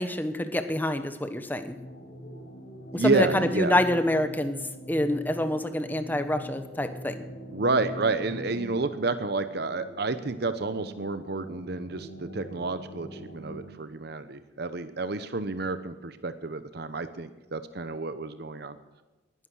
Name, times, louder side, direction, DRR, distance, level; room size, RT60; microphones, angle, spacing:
voice 1, 0.0-1.8 2.9-4.6 4.9-7.3, left 1 dB, 10° left, 9 dB, 1.1 m, -27 dB
sound 1, 1.7-13.7, equal, 60° left, 4.1 m, -43 dB
voice 2, 2.9-3.8 7.5-18.8, right 3 dB, 60° right, 11 dB, 0.9 m, -30 dB
20.0 x 11.5 x 6.3 m, 1.1 s
head